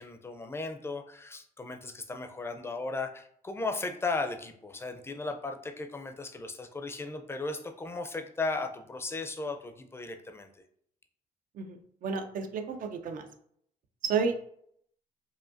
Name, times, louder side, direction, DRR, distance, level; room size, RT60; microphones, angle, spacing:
voice 1, 0.0-10.5, left 3 dB, 15° left, 6 dB, 0.5 m, -36 dB
voice 2, 12.0-13.2 14.0-14.5, right 5 dB, 65° right, 6 dB, 0.6 m, -31 dB
4.9 x 2.7 x 2.6 m, 0.67 s
cardioid pair, 105°, 15 cm